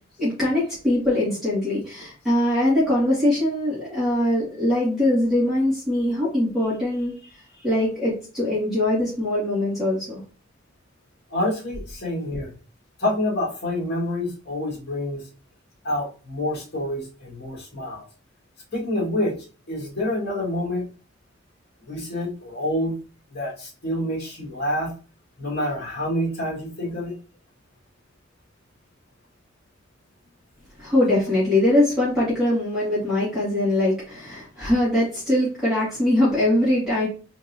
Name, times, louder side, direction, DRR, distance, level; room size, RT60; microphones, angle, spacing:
voice 1, 0.2-7.3 7.6-10.2 30.8-37.1, left 1 dB, ahead, -9 dB, 2.0 m, -22 dB
voice 2, 11.3-12.5 13.0-15.2 15.8-18.0 18.7-19.4 19.7-20.9 21.9-23.0 23.3-24.9 25.4-27.1, left 1 dB, 55° left, -3 dB, 1.7 m, -27 dB
3.9 x 3.5 x 2.6 m, 0.36 s
head